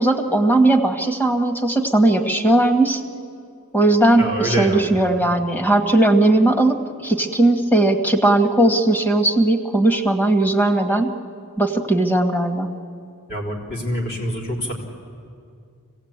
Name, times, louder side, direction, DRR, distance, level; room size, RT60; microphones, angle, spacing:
voice 1, 0.0-3.0 3.7-11.1 11.6-12.7, right 2 dB, 10° left, 5 dB, 1.5 m, -18 dB
voice 2, 4.2-4.9 13.3-14.7, right 1 dB, 50° left, 0 dB, 4.0 m, -25 dB
25.5 x 17.5 x 8.8 m, 2.3 s
head